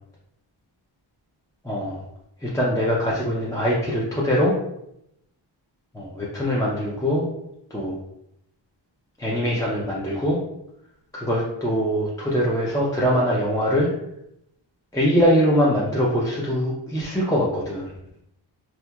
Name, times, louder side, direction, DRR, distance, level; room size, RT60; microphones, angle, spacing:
voice 1, 1.6-2.0 2.4-4.6 5.9-7.3 7.7-8.0 9.2-10.4 11.1-13.9 14.9-17.9, equal, 10° left, -6 dB, 0.4 m, -22 dB
2.8 x 2.7 x 2.3 m, 0.78 s
wide cardioid pair, 105°, 48 cm